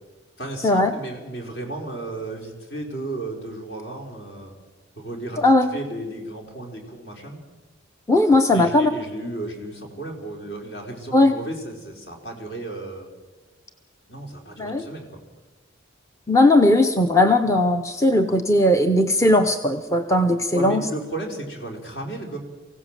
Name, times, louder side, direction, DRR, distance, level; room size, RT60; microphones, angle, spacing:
voice 1, 0.4-4.6 5.0-7.4 8.5-13.1 14.1-15.1 20.5-22.4, right 2 dB, 55° left, 1 dB, 4.4 m, -34 dB
voice 2, 5.4-5.7 8.1-8.9 11.1-11.4 14.6-14.8 16.3-20.9, left 1 dB, 15° left, 6 dB, 0.8 m, -18 dB
24.0 x 16.5 x 7.4 m, 1.2 s
head